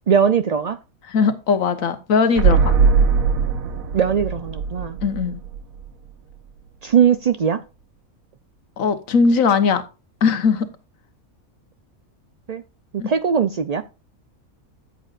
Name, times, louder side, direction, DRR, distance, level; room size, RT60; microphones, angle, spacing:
voice 1, 0.1-0.8 3.9-5.0 6.8-7.6 12.5-12.6 13.1-13.8, right 7 dB, 55° right, 0.4 m, -19 dB
voice 2, 1.1-2.8 5.0-5.4 8.8-9.8 10.2-10.7 13.0-13.1, left 5 dB, 70° left, 1.5 m, -19 dB
sound 1, 2.4-6.1 6.4-6.5, right 5 dB, 80° right, 1.5 m, -20 dB
13.5 x 7.8 x 2.5 m
omnidirectional pair, 1.5 m